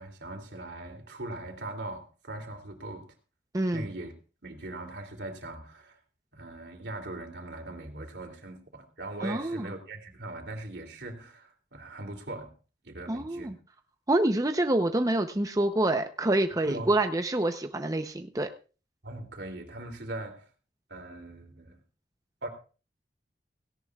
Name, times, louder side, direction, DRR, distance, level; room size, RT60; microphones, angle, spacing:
voice 1, 0.0-3.0 3.7-4.1 4.4-6.0 6.3-12.5 12.8-13.6 16.6-16.9 19.0-20.4 20.9-21.8 22.4-22.5, right 2 dB, 80° right, 4 dB, 3.0 m, -40 dB
voice 2, 3.5-3.9 9.2-9.7 13.1-13.5 14.1-18.5, right 1 dB, 20° right, 6 dB, 0.7 m, -27 dB
17.5 x 17.0 x 2.4 m, 0.36 s
head